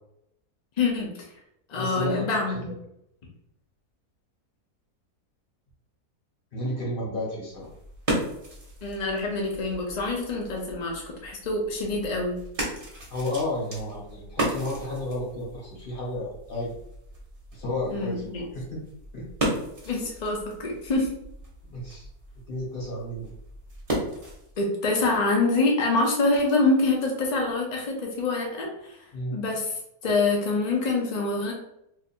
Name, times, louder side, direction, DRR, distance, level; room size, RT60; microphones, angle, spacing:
voice 1, 0.8-1.3 1.7-2.7 8.8-12.4 17.9-18.4 19.9-21.1 24.6-29.0 29.3-31.5, left 3 dB, 70° left, -1 dB, 0.4 m, -26 dB
voice 2, 1.7-2.2 6.5-7.7 13.1-16.7 17.5-18.8 19.1-19.3 21.7-22.1 22.5-23.3 29.1-29.3, left 1 dB, 35° left, -4 dB, 1.2 m, -32 dB
sound 1, 7.5-24.6, right 1 dB, 40° right, 1.1 m, -36 dB
2.8 x 2.5 x 4.2 m, 0.80 s
omnidirectional pair, 1.7 m